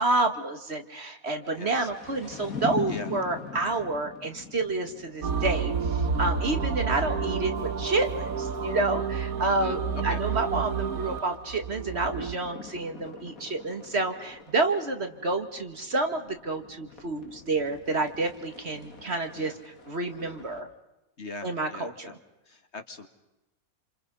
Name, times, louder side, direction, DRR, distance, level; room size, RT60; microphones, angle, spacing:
voice 1, 0.0-19.5 19.9-20.7 21.4-22.1, right 2 dB, 50° right, 6 dB, 2.3 m, -29 dB
sound 1, 1.4-8.2 8.5-8.6 8.8-9.0 9.3-20.6, left 5 dB, 80° left, 2.7 m, -43 dB
voice 2, 1.5-1.9 2.9-3.1 9.5-9.8 10.1-10.2 19.3-19.6 21.2-22.2 22.5-23.1, left 3 dB, 50° left, 7 dB, 2.2 m, -41 dB
sound 2, 5.2-12.3, right 5 dB, 80° right, 1.9 m, -30 dB
28.5 x 27.5 x 5.6 m, 0.97 s
omnidirectional pair, 1.5 m